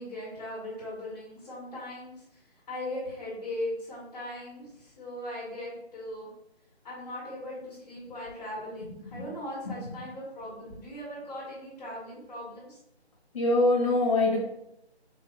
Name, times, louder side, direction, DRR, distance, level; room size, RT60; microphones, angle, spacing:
voice 1, 0.0-6.3 6.8-12.8, left 1 dB, 5° left, -7 dB, 1.1 m, -39 dB
voice 2, 13.3-14.4, left 2 dB, 30° left, -3 dB, 1.0 m, -24 dB
3.8 x 2.5 x 4.0 m, 0.82 s
hypercardioid pair, 170°, 33 cm